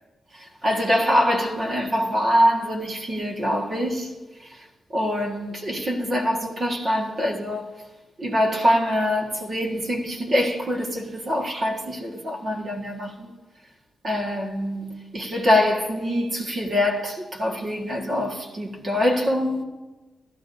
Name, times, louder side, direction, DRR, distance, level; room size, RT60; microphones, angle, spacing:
voice 1, 0.3-4.1 4.4-4.7 4.9-7.7 8.2-13.3 14.0-19.6, equal, 40° right, 1.6 m, -24 dB
15.5 x 12.0 x 2.7 m
wide cardioid pair, 120°, 0 cm